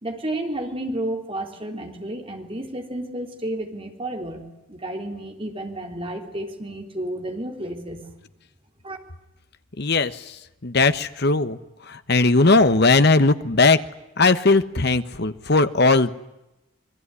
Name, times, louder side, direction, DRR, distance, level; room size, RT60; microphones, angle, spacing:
voice 1, 0.0-8.1 8.8-9.0, right 1 dB, 25° right, 3 dB, 3.7 m, -31 dB
voice 2, 9.8-10.4 10.6-11.6 11.9-13.8 14.2-16.1, left 3 dB, 50° left, 11 dB, 1.3 m, -18 dB
27.5 x 22.0 x 9.9 m, 0.95 s
head